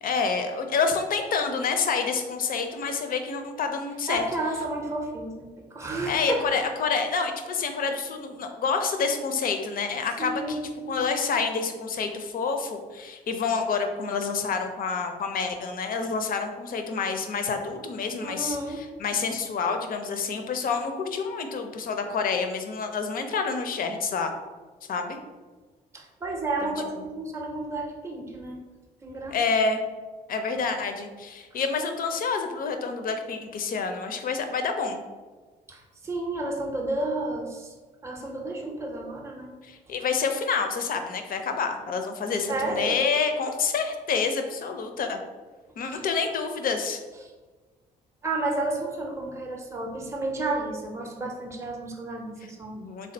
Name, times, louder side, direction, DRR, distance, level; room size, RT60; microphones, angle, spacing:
voice 1, 0.0-4.3 6.1-10.6 10.9-24.3 24.9-25.2 26.6-27.0 29.3-29.8 30.3-35.0 39.6-45.2 45.8-47.0 52.7-53.1, left 5 dB, 45° left, 6 dB, 0.4 m, -28 dB
voice 2, 4.1-6.4 10.2-11.1 18.2-18.8 25.9-28.6 29.0-29.4 30.5-30.7 35.7-37.7 38.0-39.5 42.5-43.0 45.9-46.0 47.2-47.3 48.2-52.8, right 2 dB, 15° right, 0 dB, 0.5 m, -31 dB
3.5 x 2.1 x 2.6 m, 1.4 s
hypercardioid pair, 45°, 21 cm